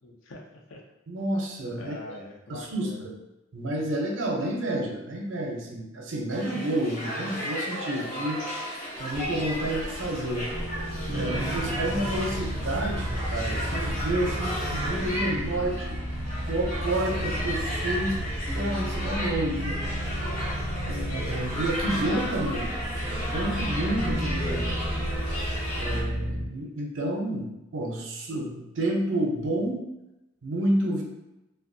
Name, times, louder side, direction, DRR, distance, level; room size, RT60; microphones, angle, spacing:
voice 1, 0.0-0.8 1.8-3.0, left 2 dB, 70° left, -1 dB, 0.5 m, -43 dB
voice 2, 1.1-2.0 2.5-3.2 3.5-8.4 9.0-10.5 11.1-16.0 16.5-19.8 20.9-22.7 23.1-25.0 25.7-29.8 30.4-31.0, right 1 dB, 70° right, 1 dB, 0.5 m, -30 dB
sound 1, 6.3-26.0, equal, 45° left, 0.9 m, -34 dB
sound 2, 9.1-25.7, equal, 90° left, 1.0 m, -39 dB
sound 3, 10.5-26.5, equal, 10° left, 0.4 m, -33 dB
2.6 x 2.2 x 2.6 m, 0.91 s
head